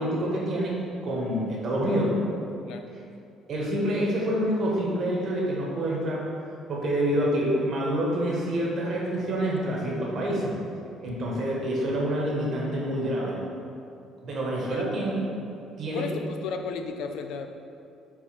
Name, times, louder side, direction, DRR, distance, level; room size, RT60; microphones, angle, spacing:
voice 1, 0.0-2.2 3.5-6.3 6.7-10.6 11.0-13.4 14.2-15.2 15.8-16.1, right 1 dB, 40° right, -3 dB, 1.2 m, -27 dB
voice 2, 15.9-17.5, left 5 dB, 70° left, 5 dB, 0.5 m, -33 dB
4.9 x 3.9 x 5.6 m, 2.5 s
cardioid pair, 170°, 0 cm